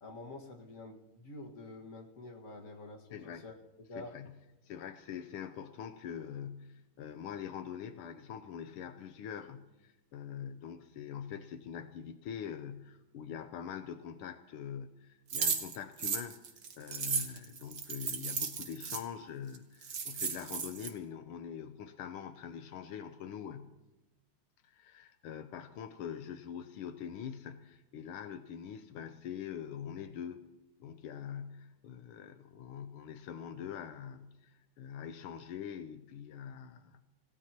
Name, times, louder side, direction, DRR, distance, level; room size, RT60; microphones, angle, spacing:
voice 1, 0.0-3.5 3.9-4.1, left 2 dB, 40° left, 1 dB, 2.1 m, -47 dB
voice 2, 3.1-3.4 4.0-4.4 4.7-16.4 16.8-23.8 24.6-30.4 30.8-37.0, left 8 dB, 80° left, 9 dB, 1.7 m, -44 dB
sound 1, 15.3-19.0 19.5-19.6 19.8-20.9, right 6 dB, 50° right, 1.7 m, -35 dB
27.0 x 16.5 x 3.0 m, 1.0 s
omnidirectional pair, 2.4 m